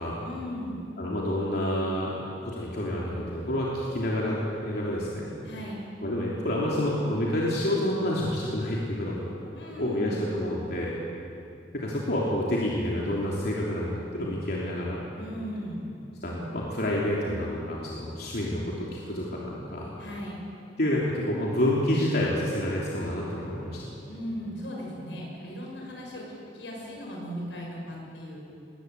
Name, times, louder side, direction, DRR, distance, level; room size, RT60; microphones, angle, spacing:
voice 1, 0.2-0.8 5.4-5.8 9.5-10.2 15.1-15.9 20.0-20.5 24.1-28.4, equal, 90° left, -2 dB, 7.0 m, -37 dB
voice 2, 1.0-5.4 6.0-9.3 9.8-10.9 11.7-15.0 16.2-19.9 20.8-23.9, left 1 dB, 60° left, -5 dB, 3.3 m, -28 dB
21.5 x 19.0 x 8.4 m, 2.6 s
head